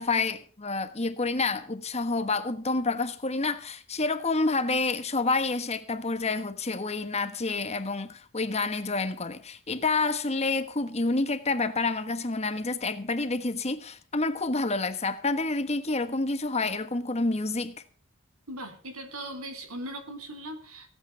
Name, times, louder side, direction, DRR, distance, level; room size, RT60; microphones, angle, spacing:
voice 1, 0.0-17.8, left 3 dB, 30° left, 1.2 m, -28 dB
voice 2, 18.5-20.9, right 1 dB, 90° right, 3.6 m, -39 dB
17.5 x 8.7 x 6.7 m
head